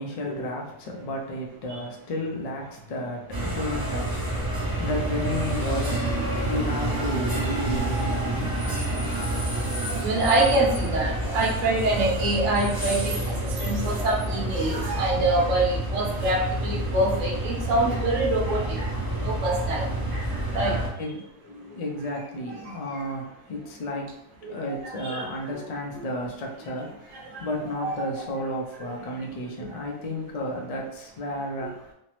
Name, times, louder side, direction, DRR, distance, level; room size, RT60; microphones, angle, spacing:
voice 1, 0.0-4.2 4.7-6.1 6.5-8.1 21.0-21.2 21.5-24.1 24.5-31.7, left 1 dB, 80° left, 0 dB, 0.3 m, -32 dB
sound 1, 3.3-20.9, right 1 dB, 30° right, 0.4 m, -28 dB
voice 2, 10.0-18.8 19.2-19.9 20.5-20.7 24.8-25.2 27.8-28.1 31.6-31.7, right 2 dB, 70° right, -3 dB, 1.1 m, -25 dB
3.2 x 2.0 x 2.9 m, 0.81 s
omnidirectional pair, 1.4 m